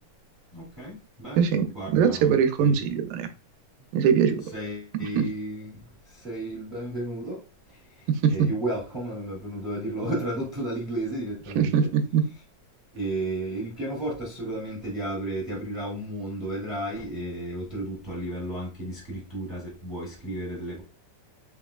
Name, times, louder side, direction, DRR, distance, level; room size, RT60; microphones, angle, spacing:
voice 1, 0.5-1.5 1.7-2.9 4.5-5.8 6.1-7.4 8.3-11.9 12.9-20.8, right 1 dB, 55° right, 0.7 m, -33 dB
voice 2, 1.4-3.3 3.9-4.4 5.2-5.3 8.2-8.3 11.6-12.2, right 7 dB, 80° right, 2.1 m, -22 dB
5.5 x 3.5 x 2.3 m
omnidirectional pair, 3.8 m